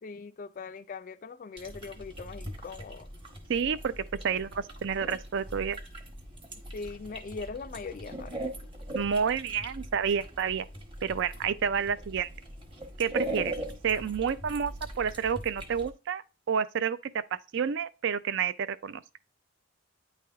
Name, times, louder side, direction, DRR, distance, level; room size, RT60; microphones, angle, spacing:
voice 1, 0.0-3.1 6.7-8.4, left 4 dB, 40° left, 0.3 m, -41 dB
sound 1, 1.6-15.9, right 1 dB, 25° right, 1.0 m, -41 dB
voice 2, 3.5-5.8 8.9-10.7 11.0-12.3 13.0-13.5 13.8-19.0, right 7 dB, 55° right, 0.4 m, -30 dB
9.3 x 3.4 x 3.4 m
head